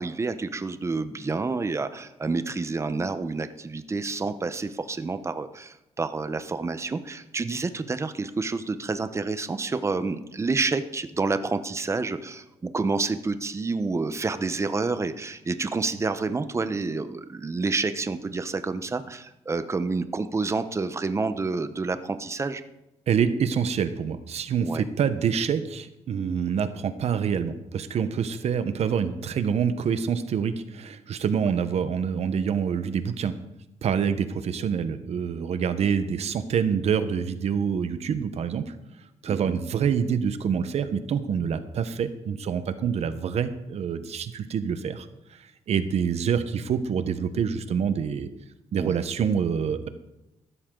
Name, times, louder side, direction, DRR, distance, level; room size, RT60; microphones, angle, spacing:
voice 1, 0.0-22.6 24.6-24.9 39.3-39.6 48.8-48.9, right 3 dB, 25° right, 11 dB, 0.8 m, -29 dB
voice 2, 23.1-33.3 33.8-38.7 39.2-45.1 45.7-48.3 48.7-49.9, right 7 dB, 60° right, 11 dB, 1.0 m, -26 dB
15.0 x 13.0 x 3.9 m, 0.94 s
cardioid pair, 115°, 12 cm